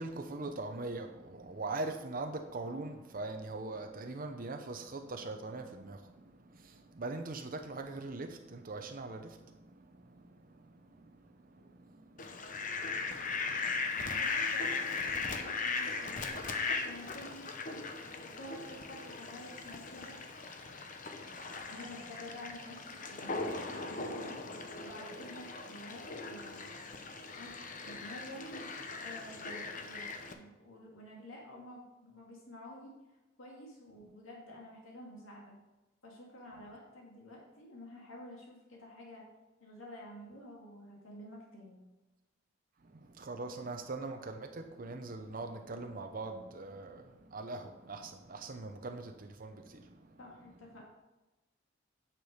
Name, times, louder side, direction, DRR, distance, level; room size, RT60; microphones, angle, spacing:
voice 1, 0.0-14.2 15.8-16.0 20.8-20.9 21.3-21.6 27.9-28.1 42.8-50.2, right 2 dB, 45° right, 6 dB, 0.7 m, -42 dB
Fowl, 12.2-30.3, left 4 dB, 40° left, 0.9 m, -38 dB
voice 2, 14.1-17.9 18.4-20.2 21.7-24.4 24.8-26.6 27.3-27.6 27.8-28.7 29.0-33.0 33.4-35.6 36.0-39.3 39.6-41.8 50.2-50.8, left 1 dB, 80° left, -2 dB, 2.3 m, -50 dB
9.7 x 6.1 x 5.1 m, 1.0 s
head